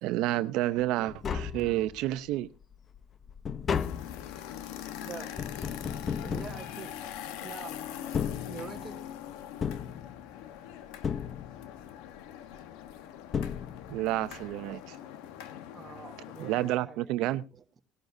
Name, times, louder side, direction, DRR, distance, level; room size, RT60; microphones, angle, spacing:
voice 1, 0.0-2.5 13.9-15.0 16.4-17.4, right 15 dB, 70° right, 0.7 m, -30 dB
Tap, 0.8-0.9 1.1-2.2 2.6-7.4 8.0-9.1 9.6-10.6 11.0-11.9 12.9-13.0 13.3-14.2 14.4-14.5, left 7 dB, 30° left, 0.7 m, -35 dB
sound 1, 3.7-16.8, left 10 dB, 85° left, 1.1 m, -43 dB
voice 2, 5.0-5.4 6.2-6.9 7.4-7.8 8.5-9.1 14.3-14.5 15.7-17.1 17.5-17.8, right 6 dB, 25° right, 1.2 m, -45 dB
19.0 x 11.5 x 2.7 m
cardioid pair, 135°, 0 cm